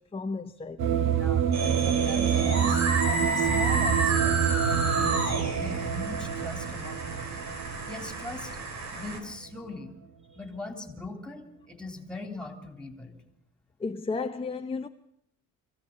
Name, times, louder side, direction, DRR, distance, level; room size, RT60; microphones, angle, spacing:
voice 1, 0.0-1.1 10.3-10.4 13.8-14.9, left 4 dB, 20° left, 0.8 m, -34 dB
sound 1, 0.8-9.0, right 8 dB, 80° right, 1.5 m, -27 dB
voice 2, 1.0-7.4 7.9-8.6 8.9-9.9 10.3-13.2, left 2 dB, 5° left, 3.4 m, -41 dB
sound 2, 1.5-9.2, right 3 dB, 60° right, 4.8 m, -31 dB
23.0 x 16.0 x 8.5 m
cardioid pair, 125°, 31 cm